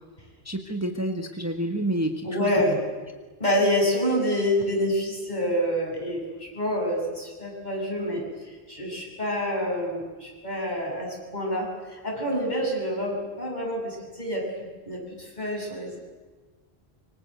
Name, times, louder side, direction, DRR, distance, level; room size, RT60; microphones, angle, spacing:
voice 1, 0.4-2.6, right 1 dB, 15° right, 5 dB, 1.6 m, -29 dB
voice 2, 2.2-2.8 3.4-8.2 8.7-11.7 12.0-14.5 14.9-16.0, equal, 45° left, -1 dB, 8.1 m, -27 dB
25.5 x 25.5 x 8.0 m, 1.3 s
omnidirectional pair, 1.1 m